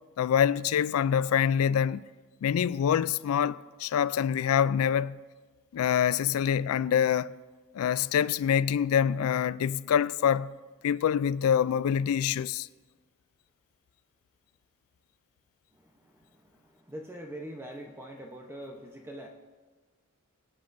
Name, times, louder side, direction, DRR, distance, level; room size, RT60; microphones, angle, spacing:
voice 1, 0.2-2.0 2.4-5.2 5.7-7.3 7.7-10.5 10.8-12.7, left 8 dB, 70° left, 0.3 m, -25 dB
voice 2, 15.7-19.3, equal, 10° right, 0.7 m, -44 dB
23.0 x 8.5 x 2.6 m
head